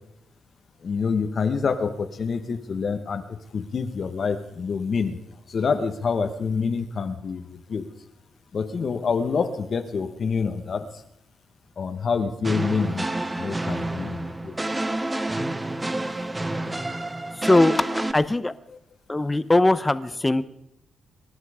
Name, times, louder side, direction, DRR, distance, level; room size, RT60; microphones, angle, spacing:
voice 1, 0.8-3.2 3.5-5.2 5.5-7.9 8.5-10.9 11.8-13.0 13.4-14.6, left 5 dB, 45° left, 7 dB, 1.2 m, -27 dB
sound 1, 12.4-18.1, right 2 dB, 15° right, 0.9 m, -29 dB
voice 2, 17.4-18.5 19.1-20.4, left 2 dB, 15° left, 14 dB, 0.8 m, -20 dB
24.5 x 12.0 x 5.0 m, 0.79 s
cardioid pair, 130°, 0 cm